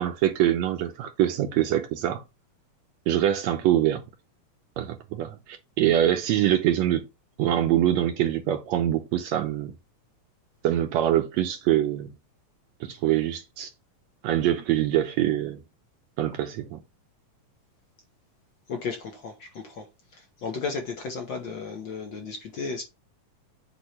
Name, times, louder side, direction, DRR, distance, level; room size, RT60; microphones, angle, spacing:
voice 1, 0.0-2.2 3.1-4.0 4.8-7.1 7.4-9.7 10.6-12.1 12.8-13.7 14.2-15.6 16.2-16.8, right 12 dB, 75° right, 1.7 m, -24 dB
voice 2, 18.7-19.9 20.1-22.8, left 4 dB, 75° left, 1.0 m, -34 dB
8.1 x 3.1 x 4.3 m
omnidirectional pair, 3.7 m